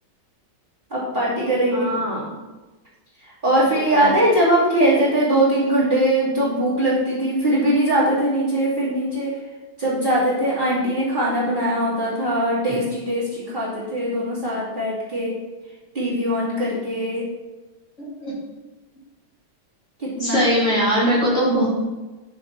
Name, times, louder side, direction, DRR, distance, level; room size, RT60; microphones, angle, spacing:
voice 1, 0.9-1.9 3.2-9.3 9.8-15.3 15.9-17.3 20.0-20.4, right 1 dB, 25° right, -10 dB, 3.1 m, -21 dB
voice 2, 1.7-2.4 3.8-4.1 18.0-18.3 20.2-21.7, equal, 35° left, -8 dB, 3.5 m, -21 dB
9.9 x 6.4 x 4.6 m, 1.2 s
omnidirectional pair, 2.2 m